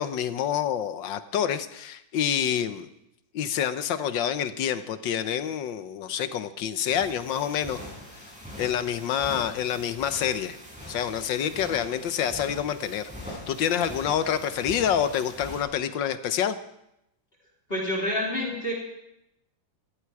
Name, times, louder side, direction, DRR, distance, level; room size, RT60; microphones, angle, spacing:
voice 1, 0.0-2.9 3.3-7.8 8.6-10.6 10.9-16.6, left 9 dB, 75° left, 11 dB, 1.6 m, -27 dB
sound 1, 6.9-15.6, equal, 5° right, 6.9 m, -42 dB
voice 2, 17.7-18.7, equal, 30° left, -3 dB, 3.6 m, -28 dB
19.5 x 15.0 x 4.8 m, 0.84 s
omnidirectional pair, 2.1 m